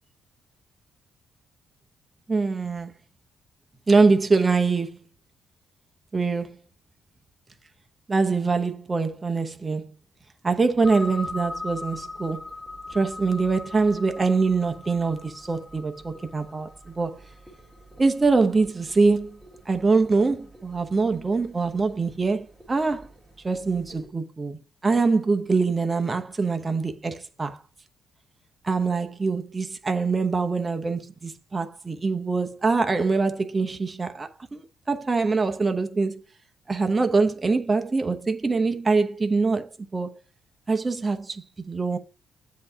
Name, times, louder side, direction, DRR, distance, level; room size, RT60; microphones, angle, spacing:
voice 1, 2.3-3.0 3.9-5.0 6.1-6.6 8.1-9.9 10.4-12.5 12.9-17.2 18.0-19.4 19.7-23.1 23.4-27.6 28.6-36.2 36.7-40.2 40.7-42.0, right 4 dB, 25° right, 0.8 m, -24 dB
sound 1, 10.8-24.1, left 2 dB, 10° right, 1.9 m, -41 dB
7.6 x 2.8 x 4.9 m
cardioid pair, 90°, 0 cm